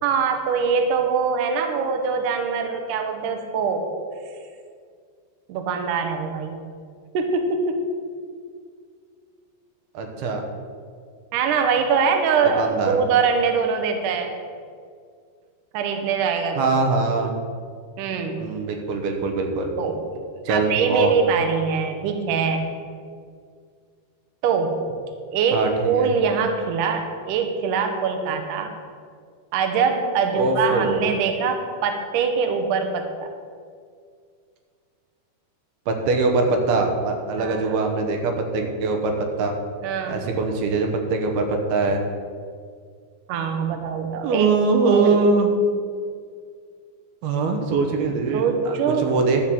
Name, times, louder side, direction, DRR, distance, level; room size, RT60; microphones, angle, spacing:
voice 1, 0.0-3.9 5.5-6.6 7.1-7.8 11.3-14.4 15.7-16.7 18.0-18.4 19.8-20.1 20.5-22.7 24.4-24.8 25.3-28.7 29.5-33.1 37.4-37.8 39.8-40.2 43.3-44.5 44.8-45.2 48.3-49.3, right 5 dB, 90° right, 5 dB, 1.8 m, -23 dB
voice 2, 9.9-10.4 12.6-12.9 16.6-17.4 18.4-19.7 20.5-21.1 25.5-26.1 30.3-31.0 35.9-39.5 40.1-42.0 44.2-45.5 47.2-49.4, right 3 dB, 70° right, 3 dB, 2.7 m, -22 dB
11.5 x 5.7 x 7.5 m, 2.1 s
omnidirectional pair, 5.1 m